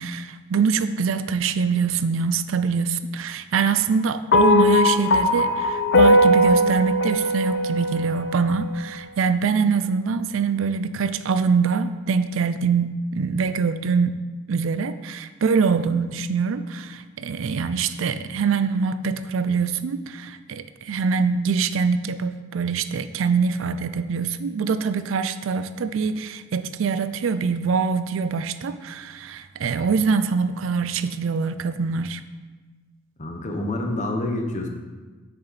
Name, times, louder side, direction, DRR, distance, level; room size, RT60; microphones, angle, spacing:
voice 1, 0.0-14.2 14.5-32.2, right 5 dB, 75° right, 12 dB, 0.4 m, -24 dB
sound 1, 4.3-8.7, left 1 dB, 60° left, 0.6 m, -19 dB
voice 2, 33.2-34.7, left 1 dB, 35° left, 3 dB, 0.9 m, -27 dB
6.9 x 6.9 x 4.1 m, 1.3 s
head